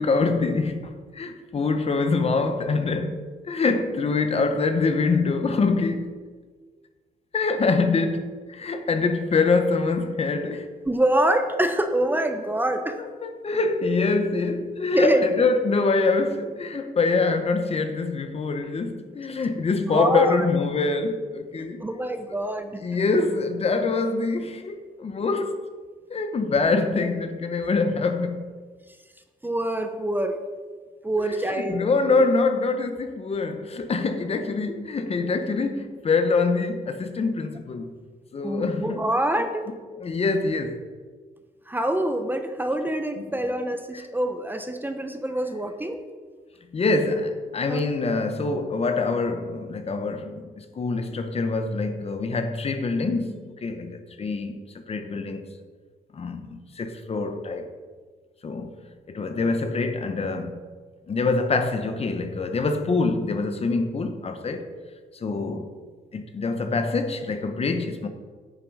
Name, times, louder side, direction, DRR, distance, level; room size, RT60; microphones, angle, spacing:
voice 1, 0.0-6.2 7.3-10.7 13.2-21.8 22.8-25.6 26.1-28.5 31.2-31.4 31.7-38.0 38.3-39.1 40.0-40.8 43.2-43.3 43.9-44.1 46.7-55.5 56.1-57.7 58.4-58.7 59.1-60.6 61.1-64.7 65.1-65.7 66.1-68.1, left 3 dB, 40° left, 0.9 m, -25 dB
voice 2, 10.9-13.0 14.9-15.2 19.9-20.5 21.8-22.8 29.4-30.4 31.0-31.9 38.4-39.7 41.7-46.0 47.7-47.8, right 1 dB, 10° right, 0.7 m, -25 dB
9.2 x 7.5 x 5.4 m
cardioid pair, 120°, 16 cm